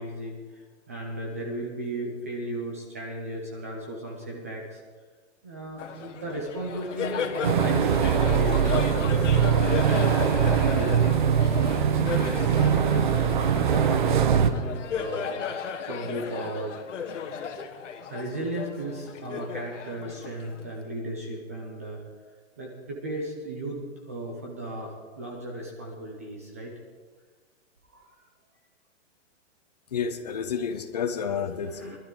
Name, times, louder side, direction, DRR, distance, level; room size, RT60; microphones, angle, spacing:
voice 1, 0.0-4.8 5.4-10.3 10.7-13.1 13.5-15.4 15.9-16.8 17.6-17.8 18.1-22.0 22.6-26.7 27.9-28.1 31.5-32.0, right 1 dB, 15° right, 0 dB, 0.5 m, -35 dB
Laughter, 5.8-20.8, left 6 dB, 80° left, 1.5 m, -34 dB
sound 1, 7.4-14.5, right 8 dB, 40° right, 0.8 m, -22 dB
voice 2, 29.9-32.0, left 7 dB, 35° left, 9 dB, 0.7 m, -30 dB
20.5 x 12.0 x 3.8 m, 1.4 s
hypercardioid pair, 180°, 36 cm